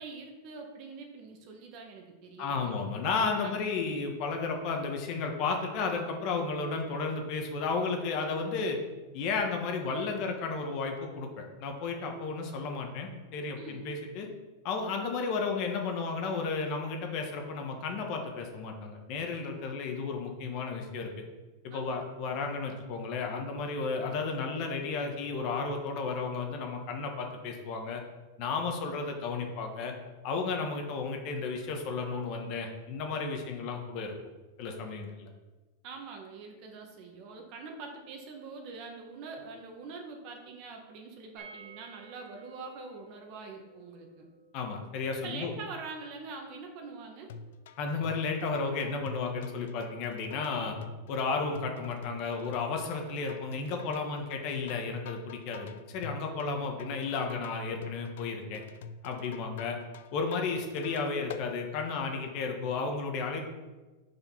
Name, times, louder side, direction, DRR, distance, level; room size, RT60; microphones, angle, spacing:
voice 1, 0.0-2.7 3.4-3.5 13.6-13.9 21.7-22.0 35.8-44.3 45.2-47.3, right 4 dB, 45° right, 2 dB, 1.5 m, -44 dB
voice 2, 2.4-8.8 9.1-14.3 14.6-21.1 21.6-28.0 28.4-29.9 30.2-34.1 34.6-35.3 44.5-45.5 47.8-50.8 51.1-58.6 59.0-59.8 60.1-63.5, left 4 dB, 45° left, 3 dB, 1.4 m, -33 dB
sound 1, 41.4-47.1 47.4-47.5 47.7-47.8, right 6 dB, 15° right, 2.6 m, -55 dB
sound 2, 47.3-61.5, left 6 dB, 75° left, 0.5 m, -46 dB
7.0 x 5.1 x 5.8 m, 1.2 s
supercardioid pair, 145°, 0 cm